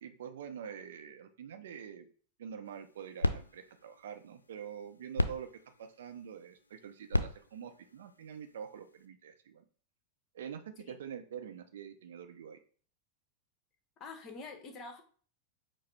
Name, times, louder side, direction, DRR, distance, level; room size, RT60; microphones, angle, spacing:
voice 1, 0.0-2.1 2.4-5.5 5.8-9.6 10.3-12.6, right 8 dB, 60° right, 0.5 m, -45 dB
sound 1, 2.6-9.1, left 2 dB, 80° left, 0.4 m, -38 dB
voice 2, 14.0-15.0, left 3 dB, 30° left, 0.9 m, -46 dB
4.7 x 2.0 x 4.4 m
figure-of-eight pair, 90°, 0 cm